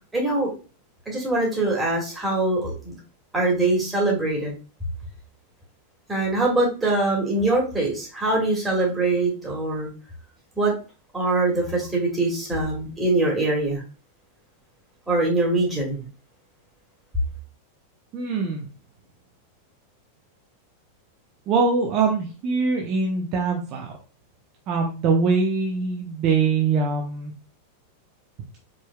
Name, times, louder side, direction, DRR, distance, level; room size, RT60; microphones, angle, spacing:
voice 1, 0.1-0.5 1.1-2.9 3.3-4.5 6.1-9.9 10.6-10.7 11.1-13.8 15.1-16.0, right 2 dB, 10° right, -2 dB, 2.3 m, -23 dB
voice 2, 18.1-18.7 21.5-23.9 24.7-27.3, right 4 dB, 40° right, 1 dB, 0.8 m, -23 dB
4.6 x 4.4 x 2.3 m, 0.34 s
figure-of-eight pair, 90°, 0 cm